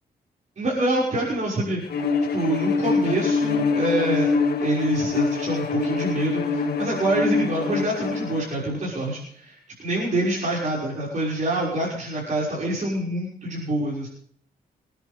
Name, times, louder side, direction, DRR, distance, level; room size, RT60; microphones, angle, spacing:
voice 1, 0.6-2.0 2.3-4.3 4.6-14.1, right 1 dB, 50° right, -6 dB, 6.4 m, -26 dB
Bowed string instrument, 1.9-8.5, left 4 dB, 80° left, 2.0 m, -24 dB
26.5 x 10.5 x 3.7 m, 0.64 s
cardioid pair, 105°, 16 cm